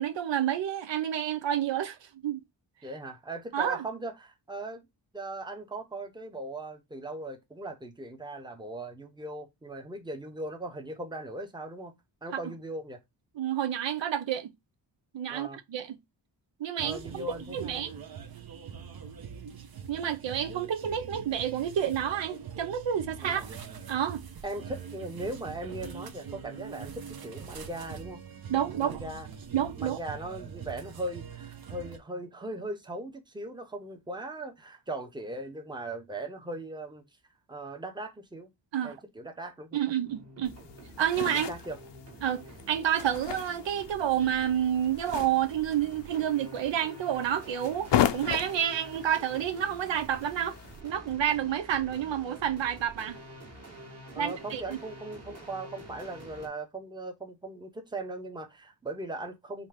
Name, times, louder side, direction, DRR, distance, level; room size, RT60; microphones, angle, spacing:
voice 1, 0.0-2.4 3.5-3.8 13.4-14.5 15.1-16.0 16.6-17.2 17.5-17.9 19.9-23.5 23.9-24.2 28.5-29.0 29.5-30.0 38.7-39.0 39.7-40.6 41.0-41.5 42.2-50.6 50.8-53.2 54.2-54.6, right 10 dB, 75° right, 0.8 m, -29 dB
voice 2, 2.8-4.8 5.1-11.9 12.2-13.0 15.3-15.6 16.8-17.8 23.2-23.5 24.4-28.2 28.8-29.3 29.8-37.0 37.5-38.5 38.8-39.8 41.5-41.8 54.1-59.7, right 2 dB, 10° right, 0.8 m, -39 dB
sound 1, 16.8-32.0, right 7 dB, 55° right, 0.9 m, -43 dB
sound 2, 40.1-56.5, right 1 dB, 35° right, 1.4 m, -48 dB
sound 3, 40.4-50.8, left 10 dB, 70° left, 0.7 m, -36 dB
5.1 x 2.8 x 3.6 m
wide cardioid pair, 140°, 44 cm